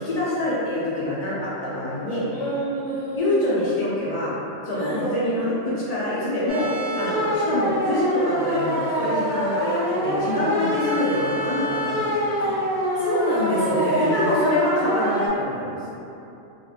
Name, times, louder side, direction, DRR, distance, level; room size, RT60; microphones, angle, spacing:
voice 1, 0.0-2.3 3.2-4.3 4.6-12.3 13.6-15.8, left 1 dB, 50° left, -8 dB, 0.4 m, -25 dB
voice 2, 2.3-3.6 4.8-5.1 10.3-10.7 12.4-14.1, equal, 85° left, -10 dB, 1.1 m, -28 dB
sound 1, 6.5-15.3, equal, 90° right, 1.2 m, -25 dB
3.2 x 2.4 x 2.4 m, 2.8 s
omnidirectional pair, 1.4 m